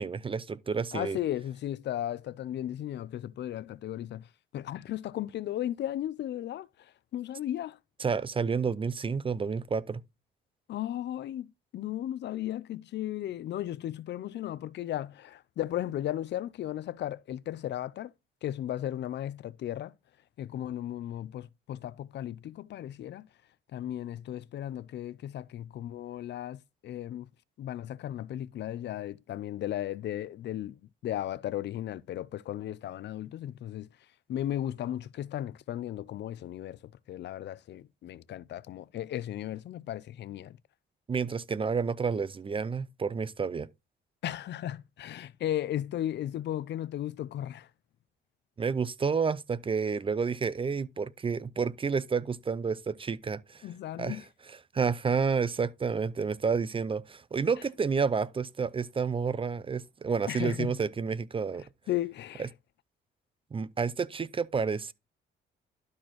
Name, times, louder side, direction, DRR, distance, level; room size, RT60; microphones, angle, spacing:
voice 1, 0.0-1.2 8.0-10.0 41.1-43.7 48.6-53.6 54.0-54.2 54.7-61.6 62.4-62.5 63.5-64.9, right 5 dB, 25° right, 0.5 m, -30 dB
voice 2, 0.9-4.3 4.5-7.8 10.7-18.1 18.4-19.9 20.4-23.3 23.7-27.3 27.6-33.9 34.3-36.8 37.1-40.6 44.2-47.7 53.6-54.3 60.3-60.7 61.9-62.5, left 12 dB, 60° left, 0.5 m, -35 dB
12.0 x 4.3 x 3.0 m
cardioid pair, 90°, 20 cm